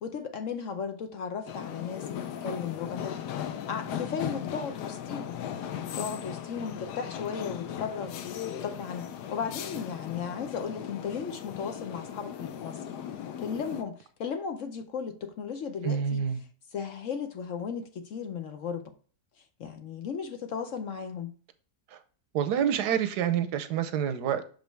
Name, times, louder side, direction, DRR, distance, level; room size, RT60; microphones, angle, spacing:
voice 1, 0.0-5.4 6.0-12.8 13.4-16.2 16.7-18.9 19.4-21.3, left 6 dB, 65° left, 0.9 m, -36 dB
sound 1, 1.5-13.8, left 9 dB, 85° left, 1.3 m, -37 dB
voice 2, 15.8-16.4 21.9-22.0 22.3-24.5, right 8 dB, 80° right, 1.3 m, -27 dB
6.3 x 5.2 x 3.4 m
omnidirectional pair, 1.7 m